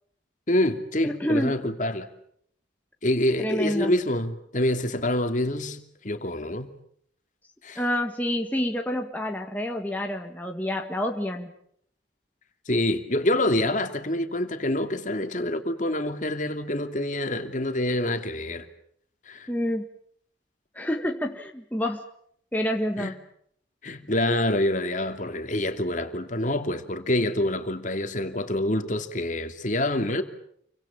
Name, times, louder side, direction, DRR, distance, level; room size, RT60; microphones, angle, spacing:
voice 1, 0.5-2.1 3.0-5.8 6.0-6.7 7.6-7.8 12.7-18.7 19.3-19.5 23.0-23.1 23.8-30.2, left 1 dB, 45° left, 2.8 m, -26 dB
voice 2, 1.0-1.6 3.4-3.9 7.8-11.5 19.5-19.9 20.7-22.0 22.5-23.1, left 1 dB, 10° left, 1.7 m, -28 dB
29.0 x 24.5 x 7.4 m
head